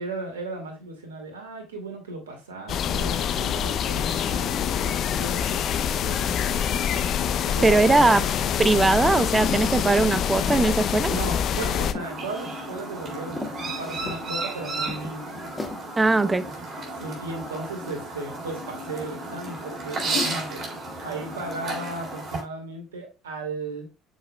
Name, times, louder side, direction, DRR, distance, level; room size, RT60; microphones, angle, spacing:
voice 1, 0.0-6.8 7.4-8.2 11.1-13.5 13.8-15.5 16.9-20.7 21.0-23.9, right 2 dB, 90° right, 2.1 m, -36 dB
sound 1, 2.7-11.9, left 8 dB, 55° left, 0.5 m, -25 dB
voice 2, 7.6-8.2 8.6-11.1 16.0-16.5, right 3 dB, 20° right, 0.7 m, -20 dB
sound 2, 7.8-8.5 8.9-10.8 11.1-11.3 11.9-12.6 12.9-13.0 13.3-14.2 14.9-15.8, left 2 dB, 15° left, 1.5 m, -36 dB
Chirp tweet, 12.0-22.4, right 2 dB, 45° right, 3.8 m, -33 dB
7.0 x 6.2 x 2.2 m
hypercardioid pair, 65°, 0 cm